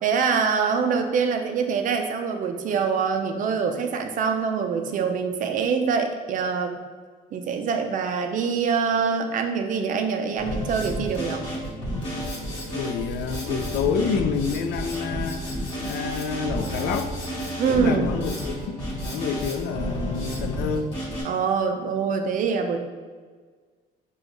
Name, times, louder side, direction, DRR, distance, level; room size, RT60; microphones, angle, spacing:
voice 1, 0.0-6.8 7.3-11.5 17.6-18.1 21.2-22.8, right 6 dB, 50° right, 6 dB, 0.5 m, -24 dB
Drum kit, 10.4-21.2, equal, 35° left, 1.5 m, -31 dB
voice 2, 12.7-15.4 15.8-17.1 17.7-21.0, left 6 dB, 70° left, 8 dB, 0.4 m, -28 dB
5.0 x 2.4 x 3.0 m, 1.5 s
cardioid pair, 110°, 17 cm